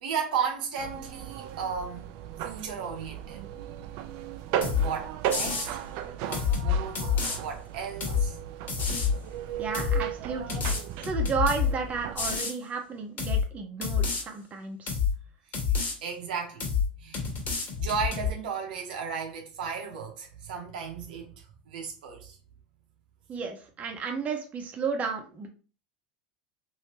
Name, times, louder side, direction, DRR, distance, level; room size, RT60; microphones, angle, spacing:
voice 1, 0.0-2.1 2.4-3.4 4.7-5.8 6.2-7.1 7.3-8.4 16.0-16.7 17.0-17.2 17.8-22.4, right 6 dB, 80° right, 0.8 m, -34 dB
sound 1, 0.8-12.4, right 10 dB, 65° right, 0.4 m, -36 dB
sound 2, 4.6-4.9 5.3-5.7 6.3-7.4 8.0-8.3 8.7-9.2 9.7-10.0 10.5-11.7 12.2-12.5 13.2-13.4 13.8-14.2 14.9-15.1 15.5-15.9 16.6-16.9 17.1-18.3, left 6 dB, 40° left, 1.3 m, -27 dB
voice 2, 9.6-10.6 11.0-15.0 23.3-25.5, right 5 dB, 30° right, 0.8 m, -33 dB
3.2 x 2.7 x 2.9 m
hypercardioid pair, 90°, 5 cm